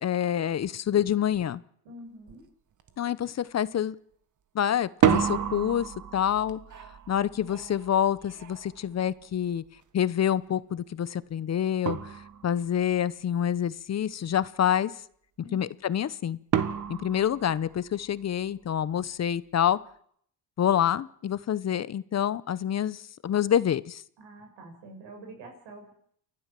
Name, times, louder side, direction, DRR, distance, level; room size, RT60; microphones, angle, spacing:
voice 1, 0.0-1.6 3.0-3.9 4.5-6.6 7.1-9.6 9.9-12.2 12.4-14.9 15.5-16.4 16.9-19.8 20.6-24.0, left 9 dB, 35° left, 18 dB, 0.8 m, -27 dB
voice 2, 1.8-2.4 15.4-15.7 24.2-25.9, right 1 dB, 75° right, 3 dB, 7.3 m, -46 dB
sound 1, 2.3-2.4 2.8-3.3 4.8-9.7 11.3-11.4 11.9-12.8 16.5-18.2, right 9 dB, 45° right, 1.6 m, -30 dB
29.5 x 12.0 x 7.5 m, 0.66 s
cardioid pair, 120°, 43 cm